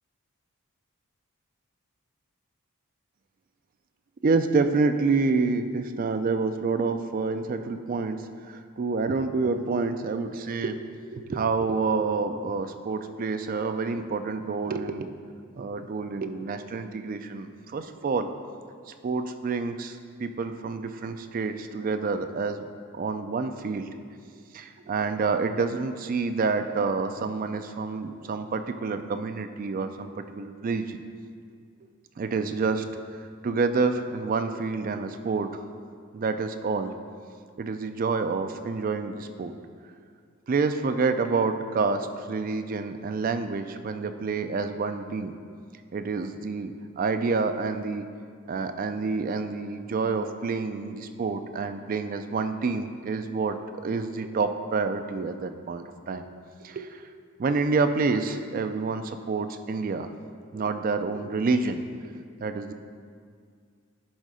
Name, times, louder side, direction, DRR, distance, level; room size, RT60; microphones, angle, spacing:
voice 1, 4.2-10.8 11.1-15.1 15.6-18.3 19.0-22.7 22.9-23.9 24.5-31.0 32.2-33.0 33.4-35.6 36.1-36.9 37.6-39.5 40.5-45.4 45.9-48.1 48.5-53.6 53.8-56.3 56.6-57.1 57.4-60.1 60.5-62.1 62.4-62.7, right 4 dB, 40° right, 9 dB, 0.3 m, -28 dB
10.5 x 3.7 x 4.9 m, 2.2 s
head